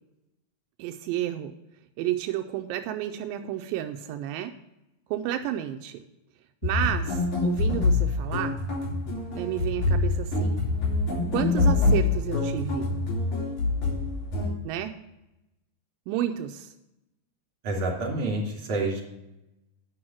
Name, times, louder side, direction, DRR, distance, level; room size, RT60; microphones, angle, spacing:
voice 1, 0.8-1.5 2.0-4.5 5.1-6.0 6.6-8.6 9.3-10.6 11.3-12.9 14.6-14.9 16.1-16.7, right 12 dB, 90° right, 6 dB, 2.3 m, -31 dB
sound 1, 6.6-14.5, left 3 dB, 60° left, 4.0 m, -25 dB
voice 2, 17.6-19.0, right 2 dB, 50° right, -2 dB, 3.9 m, -28 dB
9.9 x 6.3 x 6.0 m, 0.92 s
omnidirectional pair, 3.9 m